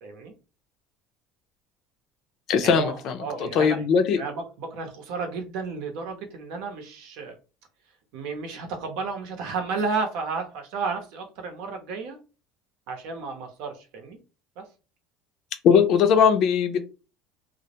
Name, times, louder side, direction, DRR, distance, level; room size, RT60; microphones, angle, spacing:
voice 1, 0.0-0.3 2.6-3.8 4.1-7.3 8.1-12.2 12.9-14.2 14.6-14.7, right 4 dB, 75° right, 0.7 m, -32 dB
voice 2, 2.5-4.2 15.6-16.8, left 6 dB, 60° left, 0.4 m, -20 dB
2.1 x 2.1 x 2.8 m
supercardioid pair, 105°, 0 cm